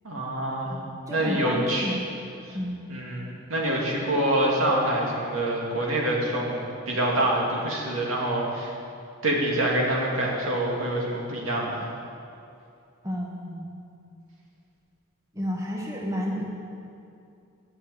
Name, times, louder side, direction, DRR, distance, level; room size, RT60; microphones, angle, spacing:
voice 1, 0.0-0.7 1.1-1.9 2.5-2.6 2.9-3.2 3.5-8.7 9.2-11.9, right 1 dB, 70° right, -3 dB, 2.5 m, -26 dB
voice 2, 0.7-2.1 2.5-2.8 13.0-13.8 15.3-16.4, equal, 15° right, -2 dB, 1.2 m, -31 dB
11.5 x 6.8 x 8.8 m, 2.5 s
head